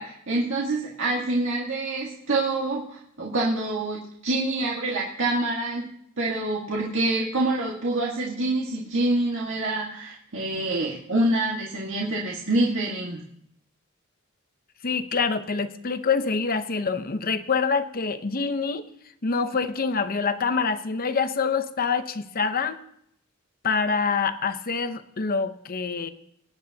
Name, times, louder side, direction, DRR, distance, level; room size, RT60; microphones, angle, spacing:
voice 1, 0.0-5.9 6.2-13.2, right 2 dB, 65° right, -4 dB, 1.8 m, -26 dB
voice 2, 14.8-18.9 19.2-22.8 23.6-26.1, left 5 dB, 45° left, 10 dB, 0.8 m, -26 dB
22.5 x 9.8 x 2.8 m, 0.71 s
head